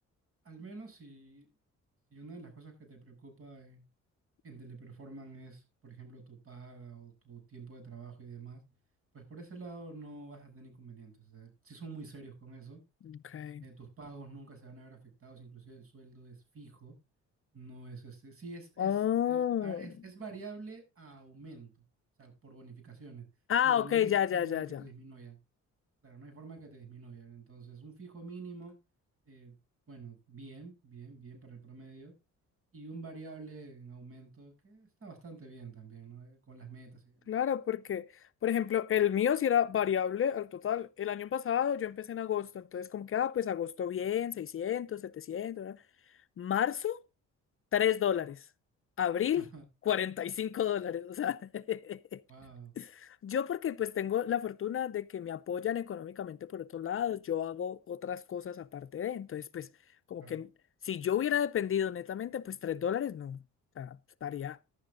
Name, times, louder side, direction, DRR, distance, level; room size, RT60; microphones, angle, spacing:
voice 1, 0.4-1.5 2.1-3.9 4.4-8.6 9.1-12.8 13.6-17.0 17.5-19.0 19.3-21.8 22.2-23.3 23.6-25.4 26.0-28.8 29.2-29.6 29.9-32.1 32.7-37.3 49.2-49.7 52.3-52.7 60.2-60.4, right 4 dB, 45° right, 7.8 m, -48 dB
voice 2, 13.0-13.6 18.8-19.9 23.5-24.8 37.3-38.1 38.4-45.8 46.4-47.0 47.7-48.4 49.0-49.4 49.9-52.2 52.8-59.7 60.1-60.5 60.8-63.4 63.8-64.6, left 9 dB, 45° left, 0.6 m, -31 dB
16.5 x 11.5 x 2.5 m
cardioid pair, 90°, 30 cm